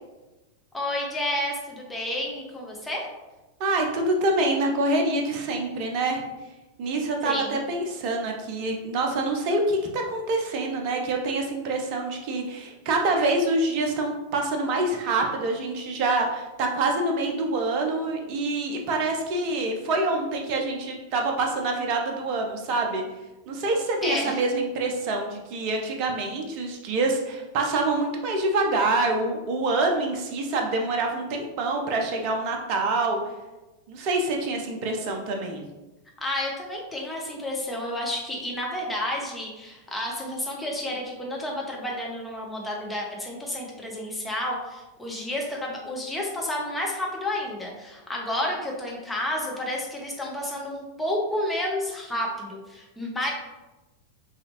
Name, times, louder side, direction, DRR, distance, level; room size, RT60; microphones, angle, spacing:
voice 1, 0.7-3.1 7.2-7.6 24.0-24.4 36.2-53.3, left 1 dB, 10° left, -2 dB, 0.8 m, -30 dB
voice 2, 3.6-6.2 6.8-23.0 23.5-33.2 33.9-35.6, right 2 dB, 45° right, 2 dB, 0.5 m, -26 dB
3.1 x 2.8 x 2.9 m, 1.1 s
figure-of-eight pair, 90°, 0 cm